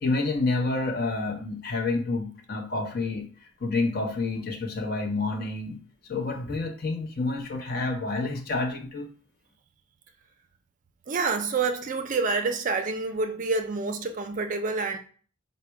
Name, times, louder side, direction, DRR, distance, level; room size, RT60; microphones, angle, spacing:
voice 1, 0.0-5.8 6.1-9.1, left 3 dB, 45° left, 0.8 m, -29 dB
voice 2, 11.1-15.0, right 4 dB, 40° right, 0.4 m, -27 dB
4.0 x 2.1 x 4.5 m
head